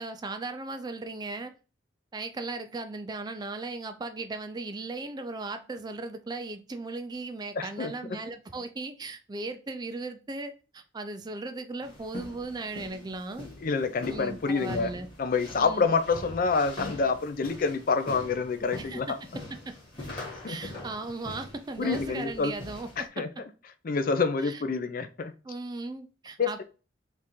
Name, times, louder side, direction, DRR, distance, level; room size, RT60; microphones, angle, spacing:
voice 1, 0.0-1.5 2.1-13.5 14.0-15.1 15.6-15.9 18.8-19.1 19.7-19.8 20.5-23.1 24.4-24.6 25.4-26.6, right 3 dB, 20° right, 0.4 m, -37 dB
voice 2, 7.6-7.9 13.6-14.9 15.2-19.2 20.1-20.6 21.8-22.5 23.0-23.3 23.8-25.3 26.4-26.6, left 4 dB, 50° left, 0.4 m, -27 dB
sound 1, 11.8-23.1, left 1 dB, 30° left, 1.7 m, -43 dB
3.6 x 2.5 x 4.3 m
head